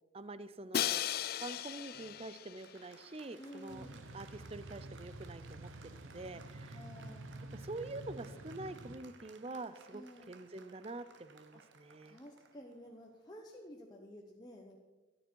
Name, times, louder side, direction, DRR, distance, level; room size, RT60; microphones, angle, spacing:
voice 1, 0.1-1.0 1.4-3.9 4.1-6.8 7.5-12.2, right 2 dB, 30° right, 13 dB, 0.6 m, -46 dB
Crash cymbal, 0.7-2.7, left 10 dB, 50° left, 0.4 m, -36 dB
Applause, 1.9-13.8, right 5 dB, 60° right, 0.9 m, -61 dB
voice 2, 3.4-4.0 6.7-7.3 9.9-10.3 11.5-11.6 12.1-14.8, equal, 20° left, -1 dB, 1.0 m, -52 dB
sound 1, 3.7-9.0, right 1 dB, 85° right, 0.9 m, -49 dB
13.5 x 12.5 x 4.6 m, 1.2 s
head